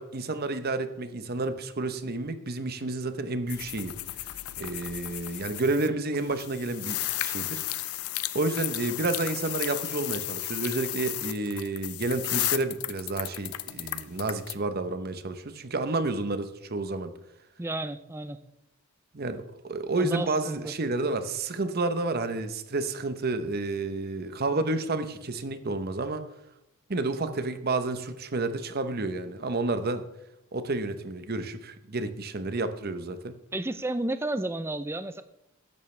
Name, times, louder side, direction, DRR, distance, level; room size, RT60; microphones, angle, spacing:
voice 1, 0.0-3.9 4.6-7.9 8.3-17.1 19.1-26.2 26.9-30.0 30.5-33.4, right 2 dB, 45° right, 0.9 m, -30 dB
sound 1, 3.5-5.9 6.1-14.5, left 15 dB, 90° left, 0.6 m, -34 dB
voice 2, 17.6-18.4 20.0-20.7 33.5-35.2, right 1 dB, 10° right, 0.5 m, -32 dB
14.0 x 11.0 x 3.3 m
head